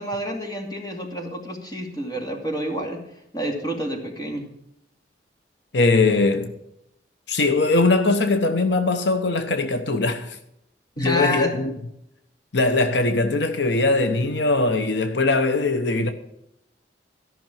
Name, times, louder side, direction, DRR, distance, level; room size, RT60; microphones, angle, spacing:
voice 1, 0.0-3.0 3.3-4.4 11.0-11.7, equal, 20° left, 2.5 m, -28 dB
voice 2, 5.7-6.5 7.3-10.4 11.0-11.7 12.5-16.1, left 3 dB, 75° left, 0.9 m, -21 dB
13.5 x 6.0 x 9.1 m
head